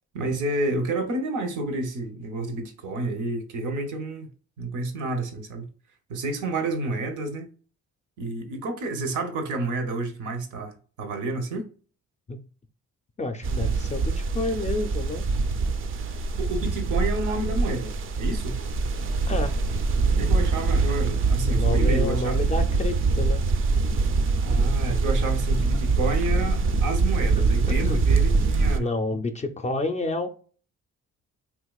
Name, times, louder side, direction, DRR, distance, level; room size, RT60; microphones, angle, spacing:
voice 1, 0.1-4.3 4.6-5.7 6.1-7.5 8.2-11.7 16.0-17.9 18.2-18.6 20.2-22.4 24.4-28.9, right 2 dB, 80° right, 0.8 m, -30 dB
voice 2, 13.2-15.2 19.2-19.6 21.5-23.4 27.8-28.0 28.8-30.3, left 2 dB, 25° left, 0.4 m, -29 dB
sound 1, 13.4-28.8, right 3 dB, 45° right, 0.4 m, -23 dB
3.5 x 2.9 x 2.3 m
cardioid pair, 90°, 30 cm